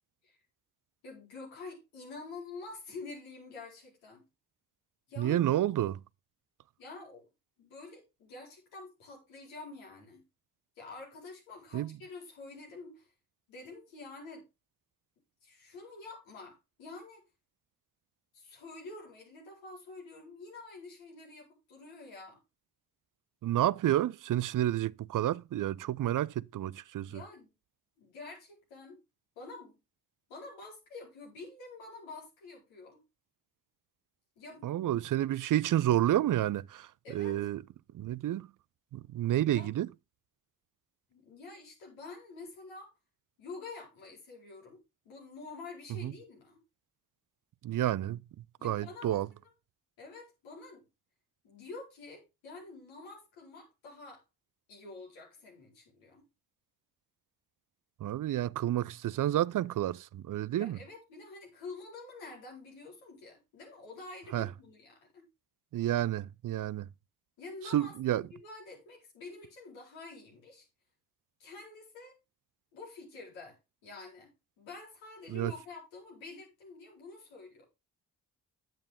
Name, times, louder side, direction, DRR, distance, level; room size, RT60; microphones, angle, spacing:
voice 1, 1.0-4.3 5.1-5.4 6.8-7.2 7.6-10.2 10.8-13.1 13.5-14.4 15.4-17.2 18.3-22.4 27.0-27.5 28.0-29.0 29.4-29.8 30.3-33.0 34.4-34.7 37.0-37.4 39.5-39.7 41.1-42.9 43.4-46.6 48.6-49.4 50.0-50.8 51.4-54.2 54.7-56.2 60.6-65.3 67.4-70.7 71.4-72.2 72.7-77.6, left 3 dB, 85° left, 4.5 m, -48 dB
voice 2, 5.2-6.0 11.7-11.9 23.4-27.2 34.6-36.9 37.1-37.6 37.9-38.5 38.9-39.9 46.0-46.1 47.6-48.2 48.6-49.3 58.0-60.8 64.3-64.5 65.7-66.9 67.7-68.2 75.3-75.5, right 13 dB, 45° right, 0.5 m, -30 dB
8.9 x 8.8 x 3.6 m
hypercardioid pair, 45°, 44 cm